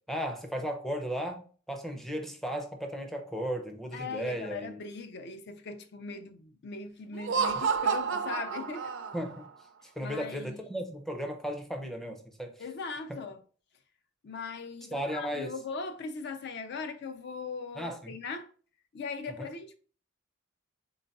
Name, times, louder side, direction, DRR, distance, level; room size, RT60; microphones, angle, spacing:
voice 1, 0.1-4.7 9.1-9.5 9.8-12.6 13.1-13.2 14.9-15.5 17.8-18.2 19.4-19.5, equal, ahead, 0.5 m, -35 dB
voice 2, 3.9-8.9 10.0-10.6 12.6-13.4 14.2-18.5 18.9-19.8, left 4 dB, 55° left, 0.4 m, -39 dB
Laughter, 7.1-9.5, right 6 dB, 60° right, 0.4 m, -30 dB
3.9 x 3.8 x 2.3 m
head